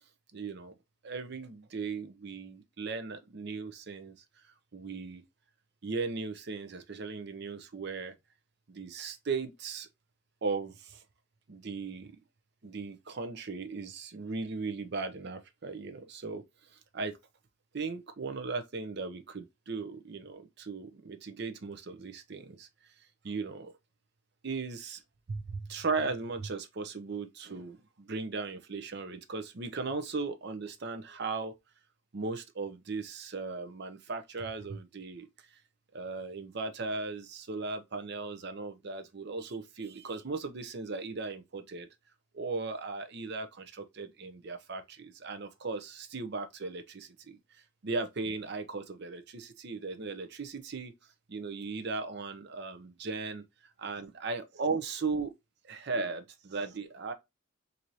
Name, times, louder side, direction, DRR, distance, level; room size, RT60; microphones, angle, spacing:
voice 1, 0.3-0.7 1.0-4.1 4.7-5.2 5.8-8.1 8.7-9.9 10.4-11.0 11.5-12.1 12.6-16.4 16.7-17.2 17.7-22.7 23.2-23.7 24.4-25.0 25.3-31.5 32.1-35.6 35.9-41.9 42.3-47.4 47.8-50.9 51.3-53.4 53.8-55.3 55.6-57.1, right 4 dB, 55° right, 0.6 m, -37 dB
4.6 x 2.7 x 2.7 m
head